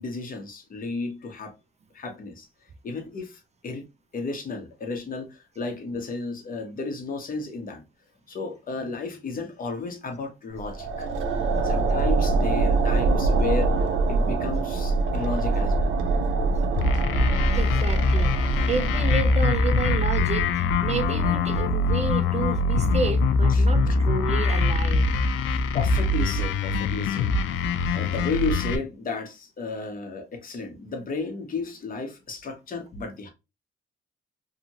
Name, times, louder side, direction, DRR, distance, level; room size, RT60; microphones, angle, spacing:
voice 1, 0.0-1.5 1.9-2.5 2.8-3.8 4.1-7.8 8.3-11.1 11.6-13.8 14.1-15.9 23.5-24.0 25.7-27.3 27.9-33.3, left 4 dB, 45° left, 1.0 m, -33 dB
sound 1, 10.5-19.9, right 3 dB, 85° right, 0.6 m, -24 dB
sound 2, 16.8-28.8, left 3 dB, 90° left, 0.5 m, -23 dB
voice 2, 17.5-25.1, right 4 dB, 35° right, 0.5 m, -31 dB
2.8 x 2.5 x 2.8 m
cardioid pair, 90°, 20 cm